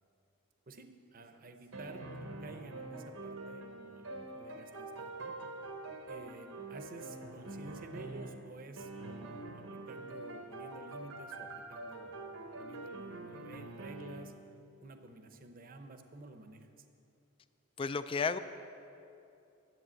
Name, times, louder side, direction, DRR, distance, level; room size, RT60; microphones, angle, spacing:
voice 1, 0.7-2.0 2.4-5.3 6.1-14.4 14.8-16.7, right 2 dB, 40° right, 7 dB, 0.7 m, -51 dB
sound 1, 1.2-8.5 8.8-14.4, right 2 dB, 75° right, 1.0 m, -45 dB
voice 2, 17.8-18.4, left 5 dB, 25° left, 12 dB, 0.3 m, -32 dB
11.0 x 8.0 x 7.7 m, 2.7 s
head